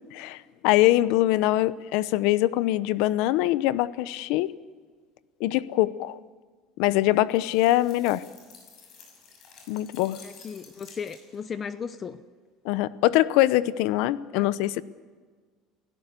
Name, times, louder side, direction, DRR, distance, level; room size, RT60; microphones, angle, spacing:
voice 1, 0.1-4.6 5.4-6.2 6.8-8.2 9.7-10.2 12.6-14.8, left 16 dB, 75° left, 17 dB, 0.8 m, -23 dB
sound 1, 7.3-11.5, left 5 dB, 45° left, 6.4 m, -51 dB
voice 2, 10.2-12.2 14.3-14.5, left 6 dB, 30° left, 12 dB, 0.8 m, -36 dB
29.0 x 16.5 x 6.9 m, 1.6 s
cardioid pair, 145°, 0 cm